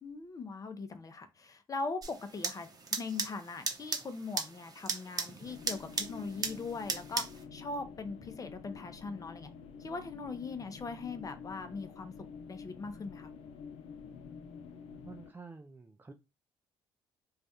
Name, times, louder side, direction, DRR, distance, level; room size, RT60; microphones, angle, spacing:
voice 1, 0.0-7.2 7.5-9.5 9.8-12.1 12.5-13.3, left 4 dB, 35° left, 0.7 m, -40 dB
sound 1, 2.0-7.4, right 4 dB, 35° right, 0.8 m, -38 dB
sound 2, 5.4-15.3, left 6 dB, 70° left, 0.5 m, -48 dB
voice 2, 15.0-16.1, right 4 dB, 20° right, 0.4 m, -49 dB
3.2 x 2.4 x 2.7 m
supercardioid pair, 60°, 10 cm